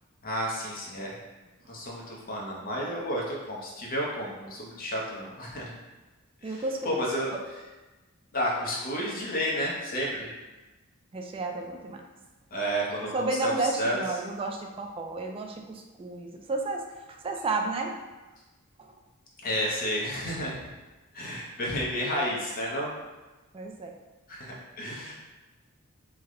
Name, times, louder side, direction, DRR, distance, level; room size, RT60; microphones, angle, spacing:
voice 1, 0.2-1.1 1.7-5.7 6.4-7.3 8.3-10.3 12.5-14.0 19.4-20.5 21.1-22.9 24.3-25.1, equal, 45° left, -3 dB, 0.7 m, -31 dB
voice 2, 6.4-7.0 11.1-12.0 13.1-16.8 17.2-18.0 23.5-23.9, right 3 dB, 25° right, 3 dB, 0.3 m, -32 dB
3.3 x 2.1 x 3.6 m, 1.1 s
head